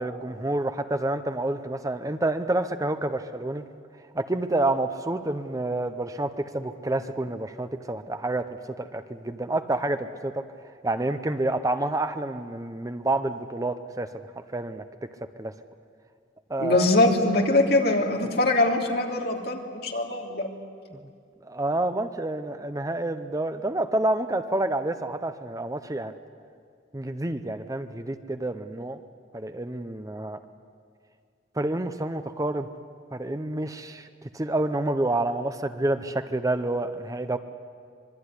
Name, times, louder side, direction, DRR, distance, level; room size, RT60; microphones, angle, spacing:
voice 1, 0.0-3.6 4.1-10.4 10.8-14.1 14.4-14.9 15.4-15.5 16.5-17.0 20.9-21.1 21.4-26.1 26.9-29.0 29.3-30.4 31.5-32.7 33.1-34.1 34.3-37.4, right 2 dB, 20° right, 10 dB, 0.7 m, -28 dB
voice 2, 16.6-20.5, left 2 dB, 55° left, 1 dB, 3.0 m, -22 dB
25.0 x 22.0 x 9.8 m, 2.2 s
head